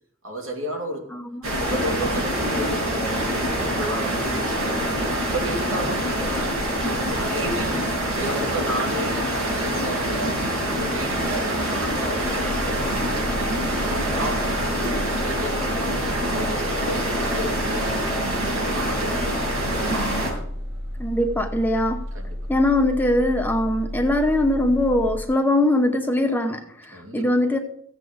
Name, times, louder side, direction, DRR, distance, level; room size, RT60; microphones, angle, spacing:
voice 1, 0.2-1.1 1.5-3.2 3.6-4.9 5.3-7.9 8.2-13.0 13.4-14.5 15.2-16.0 16.3-19.3 22.1-22.4 26.9-27.3, equal, 70° right, 1 dB, 2.7 m, -33 dB
sound 1, 1.4-20.3, right 1 dB, 90° right, 6.1 m, -25 dB
sound 2, 12.2-25.2, equal, 50° right, 1.9 m, -33 dB
voice 2, 21.0-22.0 22.5-27.6, left 1 dB, 10° left, 4 dB, 0.8 m, -21 dB
15.0 x 8.0 x 5.0 m, 0.71 s
head